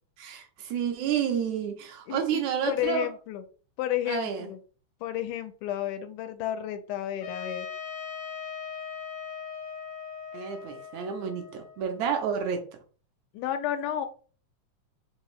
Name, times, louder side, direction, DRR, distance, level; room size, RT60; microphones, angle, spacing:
voice 1, 0.2-3.1 4.1-4.5 10.3-12.7, right 8 dB, 75° right, 1.9 m, -30 dB
voice 2, 2.1-3.4 3.8-4.6 5.0-7.7 13.3-14.1, left 11 dB, 90° left, 2.1 m, -32 dB
Trumpet, 7.2-12.0, left 7 dB, 70° left, 1.7 m, -39 dB
5.1 x 2.8 x 3.1 m
omnidirectional pair, 3.6 m